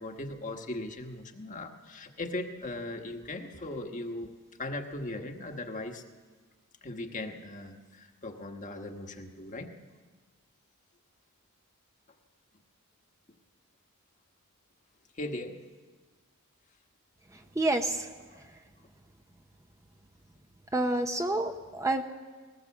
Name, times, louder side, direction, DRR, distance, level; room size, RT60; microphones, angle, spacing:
voice 1, 0.0-4.3 4.6-6.0 6.8-9.7 15.1-15.6, left 2 dB, 35° left, 4 dB, 1.4 m, -38 dB
voice 2, 17.6-18.1 20.7-22.0, right 2 dB, 15° right, 5 dB, 0.8 m, -28 dB
19.5 x 19.0 x 7.2 m, 1.4 s
head